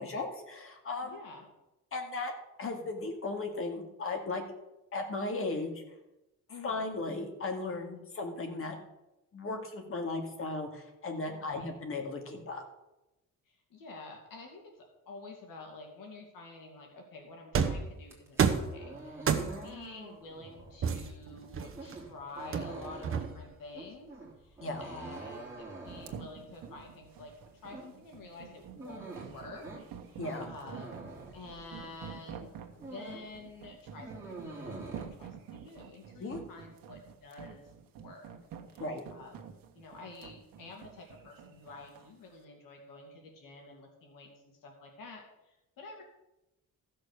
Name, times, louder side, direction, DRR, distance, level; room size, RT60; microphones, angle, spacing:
voice 1, 0.0-1.2 1.9-2.3 2.6-4.4 4.9-5.7 6.6-8.8 9.3-12.6 19.4-19.6 24.6-24.8 30.2-30.4 36.2-36.4 38.8-39.0, left 3 dB, 40° left, 3 dB, 2.3 m, -36 dB
voice 2, 1.0-1.4 6.5-6.9 11.3-11.7 13.5-14.7 15.1-24.1 24.4-27.3 27.6-29.6 30.0-31.0 31.3-37.6 38.0-38.3 38.7-38.8 39.1-39.3 39.7-44.3 44.6-46.0, left 3 dB, 75° left, 1 dB, 2.7 m, -49 dB
sound 1, 17.5-17.9 18.4-18.7 19.3-19.7 20.8-21.9 22.5-23.5, right 6 dB, 40° right, 1.1 m, -29 dB
sound 2, 18.0-32.0 32.4-33.4 33.6-35.0, right 2 dB, 10° right, 3.3 m, -46 dB
sound 3, 25.9-42.1, right 8 dB, 85° right, 1.4 m, -48 dB
15.0 x 6.4 x 6.5 m, 0.94 s
cardioid pair, 150°, 33 cm